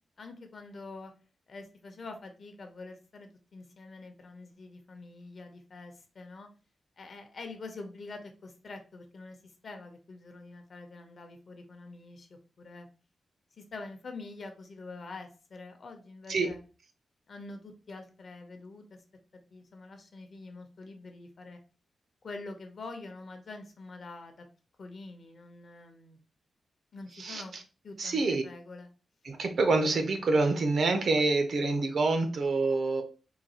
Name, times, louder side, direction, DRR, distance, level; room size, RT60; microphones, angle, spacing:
voice 1, 0.2-1.1 1.5-6.5 7.0-9.4 9.6-12.3 12.6-12.9 13.6-16.6 17.3-19.0 19.5-21.6 22.2-24.5 24.8-26.2 26.9-27.5 27.8-28.9, left 3 dB, 45° left, 5 dB, 0.6 m, -45 dB
voice 2, 27.2-27.6 28.0-28.4 29.2-33.0, right 3 dB, 60° right, 6 dB, 0.6 m, -27 dB
3.9 x 2.3 x 2.8 m, 0.35 s
wide cardioid pair, 140°, 0 cm